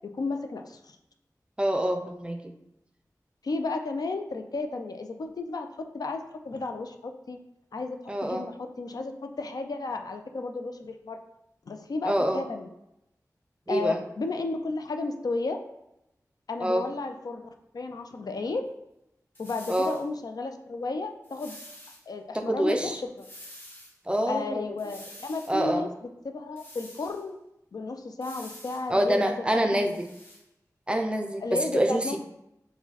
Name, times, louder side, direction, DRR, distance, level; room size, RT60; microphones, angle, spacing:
voice 1, 0.0-1.0 3.4-7.4 7.7-11.2 11.7-12.7 13.7-15.6 16.5-17.4 17.7-18.6 19.4-21.6 22.1-23.3 24.3-25.9 26.2-27.4 27.7-29.9 31.4-32.2, left 3 dB, 75° left, 6 dB, 0.4 m, -33 dB
voice 2, 1.6-2.4 8.1-8.4 12.0-12.4 13.7-14.0 16.6-16.9 19.7-19.9 22.3-23.0 24.1-24.8 25.5-25.8 28.9-30.0 30.9-32.2, right 1 dB, 15° right, 5 dB, 0.4 m, -26 dB
sound 1, 19.3-20.0 21.2-22.0 23.2-23.9 24.8-25.5 26.6-27.2 28.2-28.9 29.7-30.4, left 1 dB, 35° left, 1.2 m, -47 dB
4.8 x 2.1 x 4.0 m, 0.86 s
wide cardioid pair, 75°, 7 cm